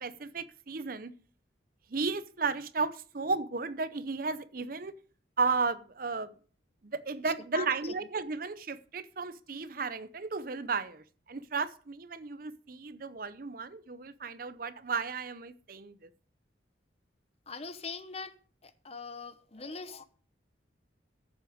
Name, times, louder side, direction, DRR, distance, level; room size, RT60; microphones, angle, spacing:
voice 1, 0.0-1.1 1.9-4.9 5.4-6.3 6.8-16.1, right 4 dB, 50° right, 0.7 m, -34 dB
voice 2, 7.2-7.9 17.5-18.3 18.6-20.0, left 4 dB, 30° left, 0.8 m, -42 dB
13.5 x 7.7 x 5.1 m
head